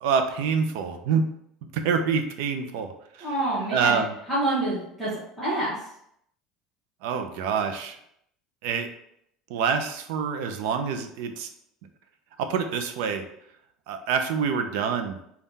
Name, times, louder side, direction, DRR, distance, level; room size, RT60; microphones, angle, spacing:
voice 1, 0.0-1.2 1.7-3.3 3.7-4.1 7.0-8.0 8.6-8.9 9.5-11.5 12.4-13.2 13.9-15.2, right 6 dB, 75° right, 7 dB, 0.5 m, -26 dB
voice 2, 3.2-4.0 4.3-5.7, right 1 dB, 5° right, -10 dB, 1.1 m, -27 dB
3.6 x 2.3 x 4.0 m, 0.74 s
cardioid pair, 155°, 0 cm